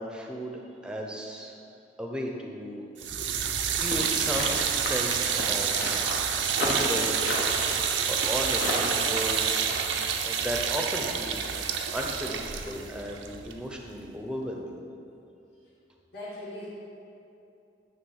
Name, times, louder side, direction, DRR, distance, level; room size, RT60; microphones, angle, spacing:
voice 1, 0.0-1.5 2.0-2.8 3.3-6.3 6.6-7.3 8.0-9.6 10.2-14.7, equal, 5° right, 1 dB, 0.6 m, -35 dB
sound 1, 3.0-14.1, right 7 dB, 85° right, 0.6 m, -28 dB
sound 2, 3.9-9.8, left 2 dB, 75° left, 1.2 m, -32 dB
voice 2, 16.1-16.7, left 1 dB, 55° left, -12 dB, 1.8 m, -40 dB
9.5 x 3.5 x 6.3 m, 2.7 s
head